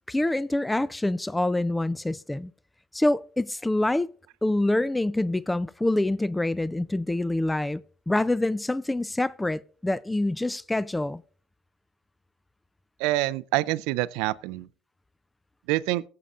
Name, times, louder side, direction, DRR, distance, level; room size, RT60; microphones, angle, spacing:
voice 1, 0.1-2.5 2.9-4.1 4.4-11.2, left 1 dB, 10° left, 0.3 m, -26 dB
voice 2, 13.0-14.7 15.7-16.0, right 18 dB, 75° right, 0.4 m, -26 dB
17.0 x 7.5 x 2.5 m
hypercardioid pair, 70°, 0 cm